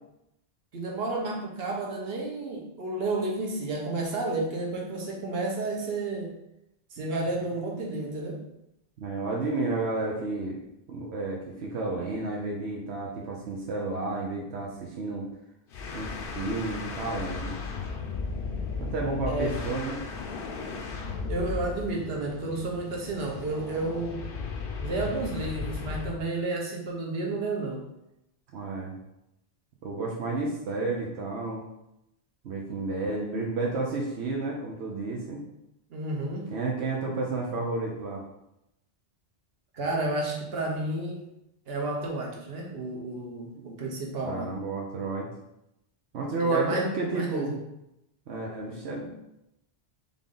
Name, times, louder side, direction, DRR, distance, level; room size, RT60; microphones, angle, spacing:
voice 1, 0.7-6.3 6.9-8.4 19.3-19.6 21.3-24.3 24.8-27.9 35.9-36.5 39.7-41.2 41.7-44.5 46.4-47.6, right 2 dB, 65° right, -1 dB, 1.2 m, -31 dB
voice 2, 9.0-10.6 10.9-15.3 15.9-17.6 18.8-20.0 28.5-29.0 29.8-31.7 32.4-35.5 36.5-38.2 44.2-45.3 46.1-47.5 48.3-49.1, right 3 dB, 85° right, -1 dB, 1.0 m, -31 dB
sound 1, 15.7-26.2, left 4 dB, 65° left, 0.8 m, -36 dB
3.7 x 3.6 x 3.8 m, 0.86 s
omnidirectional pair, 1.1 m